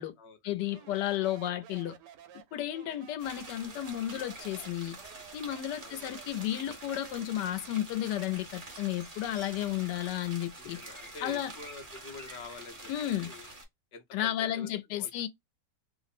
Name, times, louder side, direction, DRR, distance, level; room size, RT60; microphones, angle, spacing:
voice 1, 0.4-1.9 2.5-5.0 5.3-10.8 11.2-11.5 12.9-13.3 14.1-15.3, left 12 dB, 85° left, 1.2 m, -33 dB
Speech, 0.6-7.4, right 10 dB, 80° right, 1.2 m, -54 dB
sound 1, 3.2-13.6, right 2 dB, 25° right, 1.0 m, -47 dB
voice 2, 5.7-6.2 10.6-13.5 13.9-15.3, left 4 dB, 50° left, 0.9 m, -48 dB
3.1 x 2.0 x 4.1 m
omnidirectional pair, 1.8 m